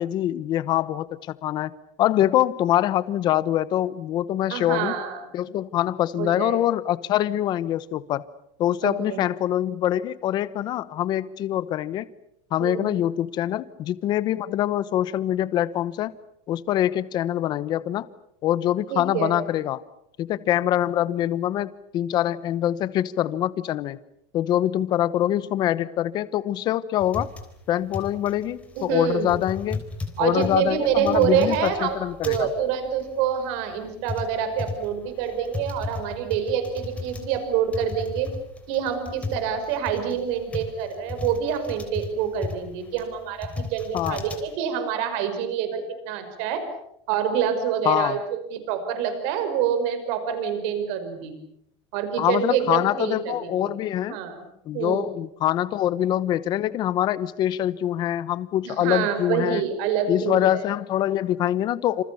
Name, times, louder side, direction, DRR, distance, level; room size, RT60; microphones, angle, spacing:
voice 1, 0.0-1.7 2.0-4.9 5.3-8.2 8.6-12.1 12.5-16.1 16.5-18.1 18.4-19.8 20.2-24.0 24.3-27.3 27.7-29.9 30.2-32.5 43.9-44.2 47.8-48.2 52.2-54.2 54.7-59.6 60.1-62.0, left 12 dB, 30° left, 17 dB, 1.0 m, -24 dB
voice 2, 4.5-5.5 6.2-6.6 8.8-9.2 12.6-12.9 18.9-19.3 28.8-29.3 30.2-32.0 32.2-38.3 38.7-46.7 47.1-51.4 51.9-53.8 54.1-54.3 54.7-55.1 58.6-60.6, right 8 dB, 50° right, 9 dB, 5.5 m, -26 dB
sound 1, 27.0-44.5, left 4 dB, 10° left, 3.6 m, -35 dB
27.5 x 27.0 x 7.1 m, 0.76 s
supercardioid pair, 170°, 14 cm